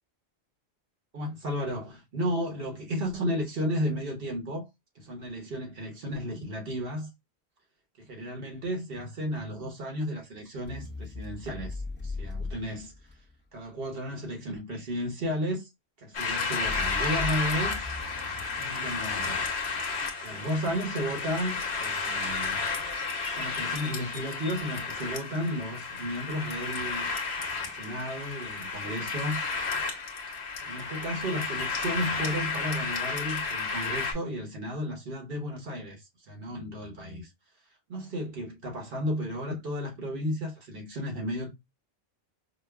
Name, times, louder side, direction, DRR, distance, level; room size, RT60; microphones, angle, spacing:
voice 1, 1.1-4.7 4.9-7.1 8.0-12.9 13.5-15.7 16.0-17.9 18.6-19.5 20.2-22.6 23.3-27.1 27.6-29.4 30.6-37.3 37.9-41.5, equal, 60° right, 1.2 m, -33 dB
sound 1, 10.6-13.6 16.6-20.1, left 3 dB, 10° left, 0.6 m, -39 dB
sound 2, 16.1-34.1, left 4 dB, 75° left, 1.1 m, -32 dB
5.1 x 2.1 x 2.2 m
omnidirectional pair, 1.1 m